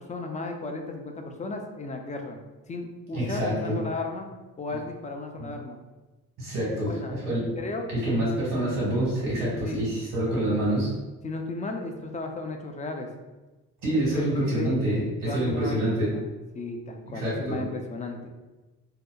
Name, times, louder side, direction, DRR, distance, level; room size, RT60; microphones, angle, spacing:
voice 1, 0.0-2.4 2.7-4.3 4.6-5.8 6.7-7.3 7.6-7.9 9.6-9.8 11.2-13.1 13.9-14.8 15.2-16.3 16.5-18.3, left 2 dB, 20° left, 3 dB, 0.3 m, -35 dB
voice 2, 3.1-3.8 6.4-7.4 7.9-10.9 13.8-16.1 17.1-17.6, right 1 dB, 70° right, -6 dB, 1.4 m, -26 dB
2.7 x 2.1 x 2.3 m, 1.1 s
supercardioid pair, 65°, 34 cm